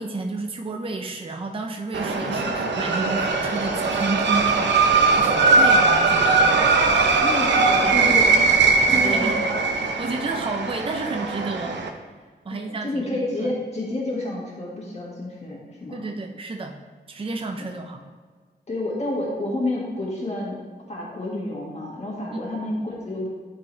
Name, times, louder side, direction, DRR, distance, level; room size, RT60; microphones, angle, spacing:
voice 1, 0.0-6.6 8.9-9.4 9.8-11.8 12.4-13.5 15.9-16.8 17.1-18.1 22.3-22.6, right 3 dB, 30° right, 4 dB, 0.6 m, -31 dB
sound 1, 1.9-11.9, right 4 dB, 85° right, 0.7 m, -20 dB
voice 2, 2.2-2.6 7.2-8.6 8.9-9.4 12.5-16.0 18.7-20.6 20.9-23.3, left 2 dB, 40° left, -5 dB, 1.8 m, -29 dB
11.0 x 4.6 x 3.3 m, 1.5 s
wide cardioid pair, 90°, 18 cm